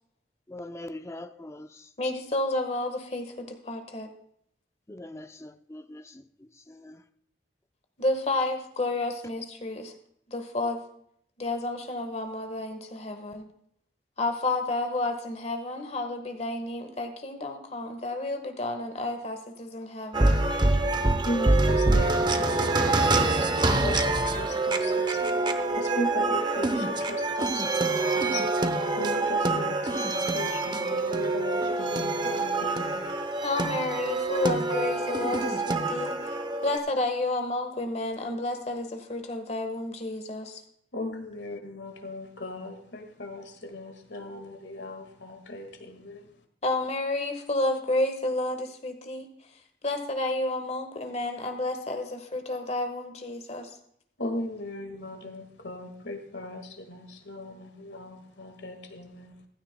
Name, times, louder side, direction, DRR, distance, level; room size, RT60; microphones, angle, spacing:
voice 1, 0.5-1.8 4.9-6.2 6.7-7.0, left 1 dB, 15° left, 9 dB, 0.6 m, -42 dB
voice 2, 2.0-4.1 8.0-9.9 10.3-10.8 11.4-13.4 14.2-20.3 33.4-36.1 36.6-40.6 46.6-49.3 49.8-53.7, left 2 dB, 40° left, 6 dB, 1.4 m, -30 dB
sound 1, 20.1-36.8, right 2 dB, 25° right, 0.8 m, -26 dB
voice 3, 21.2-23.3 23.8-25.5 25.7-33.1 40.9-46.3 54.2-59.4, left 1 dB, 75° left, 5 dB, 1.8 m, -38 dB
15.5 x 12.5 x 2.2 m, 0.70 s
head